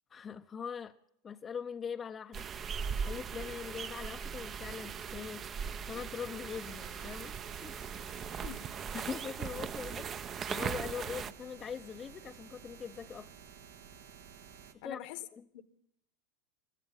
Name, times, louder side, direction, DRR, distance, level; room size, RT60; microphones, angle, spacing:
voice 1, 0.1-1.0 1.2-2.4 3.0-7.3 7.6-7.7 8.9-10.1 10.5-13.3 14.8-15.0 15.3-15.4, left 7 dB, 25° left, 0.6 m, -42 dB
sound 1, 2.3-11.3, right 7 dB, 30° right, 0.6 m, -39 dB
sound 2, 6.5-14.7, right 7 dB, 85° right, 1.8 m, -53 dB
voice 2, 8.4-8.7 14.8-15.2 15.5-15.6, left 12 dB, 60° left, 1.2 m, -44 dB
16.5 x 13.5 x 5.6 m
hypercardioid pair, 110°, 0 cm